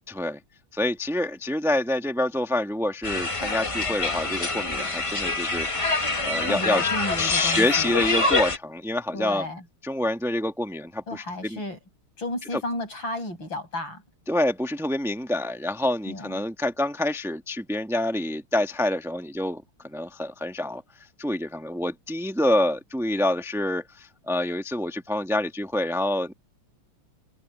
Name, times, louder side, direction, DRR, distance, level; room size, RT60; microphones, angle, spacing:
voice 1, 0.1-0.4 0.7-5.9 6.2-6.9 7.2-9.4 9.8-11.6 14.3-20.8 21.2-26.3, left 1 dB, ahead, 1.7 m, -27 dB
sound 1, 3.0-8.6, left 2 dB, 20° left, 1.2 m, -26 dB
voice 2, 6.4-7.9 9.1-9.6 11.1-11.8 12.2-14.0 16.1-16.4, left 2 dB, 60° left, 9.0 m, -33 dB
omnidirectional pair, 2.3 m